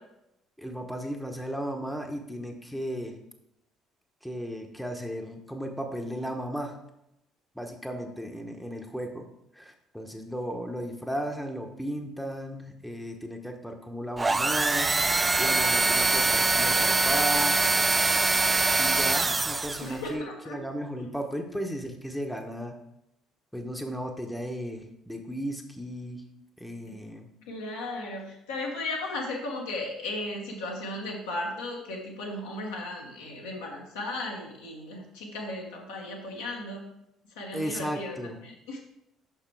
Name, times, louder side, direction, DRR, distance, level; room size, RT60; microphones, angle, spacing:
voice 1, 0.6-3.2 4.2-6.8 7.5-9.3 9.5-14.9 15.4-17.6 18.8-22.8 23.5-26.2 26.6-27.3 37.5-38.4, equal, ahead, 3 dB, 1.0 m, -35 dB
sound 1, 14.2-20.0, right 3 dB, 20° right, 0.3 m, -24 dB
voice 2, 19.8-20.6 26.9-27.0 27.5-36.8 37.3-38.2 38.4-38.8, left 2 dB, 70° left, -2 dB, 1.2 m, -36 dB
6.1 x 6.1 x 4.7 m, 0.83 s
figure-of-eight pair, 50°, 0 cm